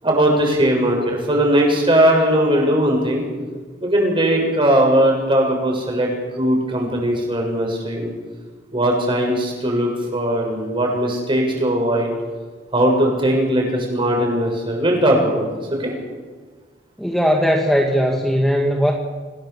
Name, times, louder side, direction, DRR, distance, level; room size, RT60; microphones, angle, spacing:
voice 1, 0.0-3.2 3.8-6.1 6.4-8.1 8.7-12.1 12.7-15.5 15.8-15.9, right 1 dB, 30° right, 0 dB, 7.3 m, -19 dB
voice 2, 17.0-18.9, equal, ahead, 1 dB, 2.0 m, -18 dB
27.0 x 18.0 x 7.5 m, 1.4 s
head